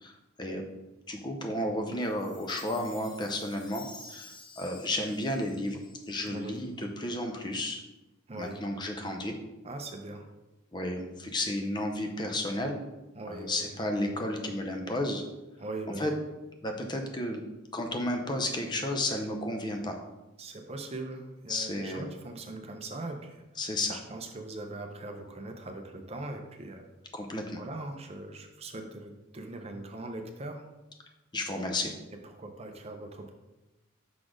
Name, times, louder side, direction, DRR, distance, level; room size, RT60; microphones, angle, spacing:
voice 1, 1.1-5.8 6.1-7.8 8.4-9.3 10.7-12.8 13.3-15.2 16.0-16.1 16.6-17.4 17.7-20.0 21.5-22.1 23.6-24.0 27.1-27.6 31.3-31.9, left 1 dB, 20° left, 4 dB, 0.6 m, -32 dB
Chime, 2.0-6.5, left 3 dB, 55° left, 1.1 m, -51 dB
voice 2, 6.3-6.6 8.3-8.6 9.6-10.3 13.1-13.7 15.6-16.1 20.4-23.4 23.9-26.8 27.6-30.6 32.4-33.3, right 2 dB, 30° right, 4 dB, 0.5 m, -41 dB
6.0 x 4.1 x 5.0 m, 1.0 s
head